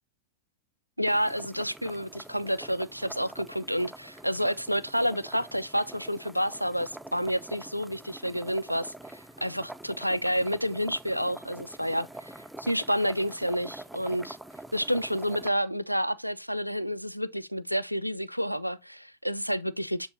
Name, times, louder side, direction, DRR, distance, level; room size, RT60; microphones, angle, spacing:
sound 1, 1.0-15.5, right 1 dB, 5° right, 0.4 m, -45 dB
voice 1, 1.0-14.4 14.7-20.1, equal, 90° right, 0.4 m, -29 dB
6.6 x 5.3 x 2.7 m
figure-of-eight pair, 90°, 0 cm